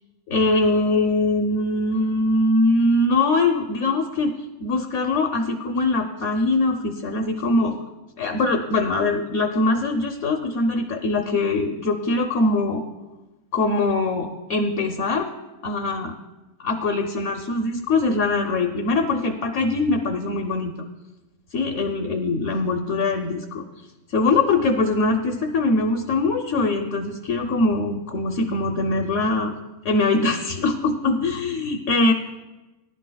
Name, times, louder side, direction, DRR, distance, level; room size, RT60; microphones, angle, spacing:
voice 1, 0.3-4.3 4.6-7.8 8.2-12.8 13.5-15.3 15.6-16.1 16.6-20.7 21.5-23.6 24.1-29.5 29.8-32.1, left 2 dB, 60° left, 4 dB, 1.0 m, -22 dB
18.5 x 11.0 x 2.3 m, 1.1 s
omnidirectional pair, 1.5 m